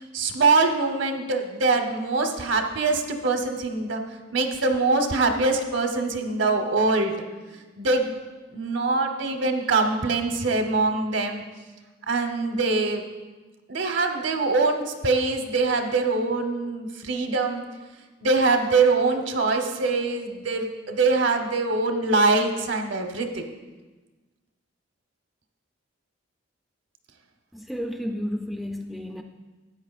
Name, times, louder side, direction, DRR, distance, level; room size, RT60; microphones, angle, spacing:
voice 1, 0.1-4.0 4.3-7.2 7.8-8.1 8.5-11.4 12.1-13.0 13.7-17.6 18.2-23.4, right 3 dB, 70° right, 5 dB, 0.9 m, -23 dB
voice 2, 27.5-29.2, equal, ahead, 3 dB, 0.3 m, -32 dB
13.0 x 8.5 x 2.4 m, 1.2 s
head